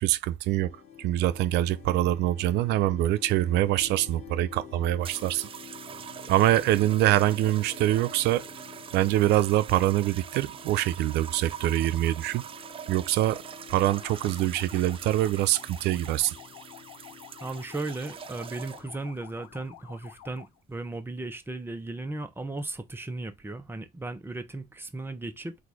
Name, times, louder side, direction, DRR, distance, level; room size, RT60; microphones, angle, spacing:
voice 1, 0.0-5.5 6.3-8.5 8.9-12.4 12.9-13.4 13.7-16.3, right 14 dB, 80° right, 0.5 m, -24 dB
sound 1, 0.6-20.1, left 7 dB, 40° left, 1.3 m, -50 dB
sound 2, 5.0-19.0 19.9-20.3, right 8 dB, 30° right, 0.4 m, -43 dB
sound 3, 13.8-20.6, left 11 dB, 90° left, 0.7 m, -49 dB
voice 2, 17.4-25.6, right 2 dB, 15° right, 1.0 m, -36 dB
4.0 x 2.6 x 4.8 m
cardioid pair, 110°, 17 cm